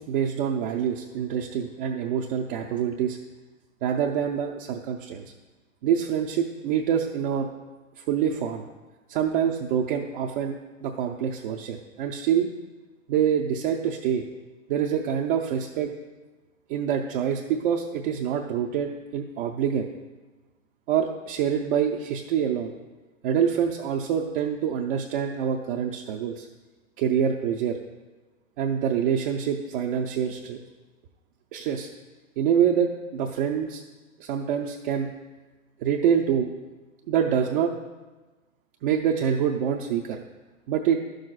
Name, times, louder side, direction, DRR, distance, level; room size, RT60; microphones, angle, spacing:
voice 1, 0.0-3.2 3.8-5.2 5.8-7.5 8.1-8.7 9.1-10.5 10.8-12.5 13.1-14.3 14.7-15.9 16.7-19.9 20.9-22.7 23.2-26.5 27.0-27.8 28.6-30.6 31.5-31.9 32.4-33.8 34.2-35.1 35.8-36.5 37.1-37.7 38.8-40.2 40.7-41.0, right 8 dB, 40° right, 1 dB, 0.6 m, -26 dB
11.5 x 6.3 x 2.4 m, 1.2 s
hypercardioid pair, 110°, 40 cm